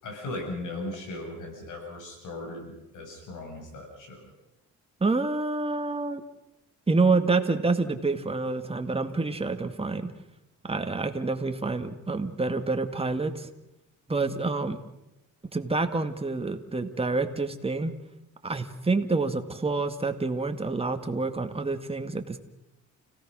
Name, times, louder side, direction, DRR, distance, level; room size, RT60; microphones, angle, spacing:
voice 1, 0.0-4.3, left 2 dB, 80° left, 3 dB, 7.3 m, -38 dB
voice 2, 5.0-6.2 6.9-10.1 10.6-13.5 14.1-14.8 15.5-18.0 18.4-22.4, right 3 dB, 20° right, 7 dB, 2.1 m, -27 dB
29.5 x 17.5 x 6.4 m, 0.91 s
cardioid pair, 90°, 30 cm